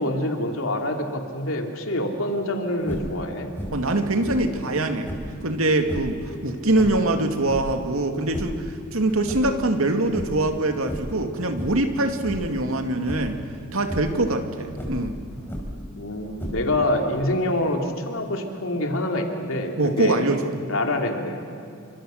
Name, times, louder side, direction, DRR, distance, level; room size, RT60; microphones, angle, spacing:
voice 1, 0.0-3.5 16.0-20.3 20.7-21.4, left 1 dB, 75° left, 3 dB, 3.2 m, -26 dB
sound 1, 2.8-3.2 3.6-3.9 4.2-5.4 5.8-6.2 6.7-7.8 8.2-8.7 9.1-9.9 10.1-10.5 10.8-11.2 11.6-11.9 12.2-12.6 13.1-13.4 13.8-14.2 14.7-15.9 16.3-16.9, equal, 10° left, 4.0 m, -34 dB
voice 2, 3.7-5.1 5.4-13.4 13.7-15.1 19.8-20.5, right 2 dB, 80° right, 6 dB, 2.4 m, -23 dB
28.5 x 25.5 x 6.6 m, 2.5 s
head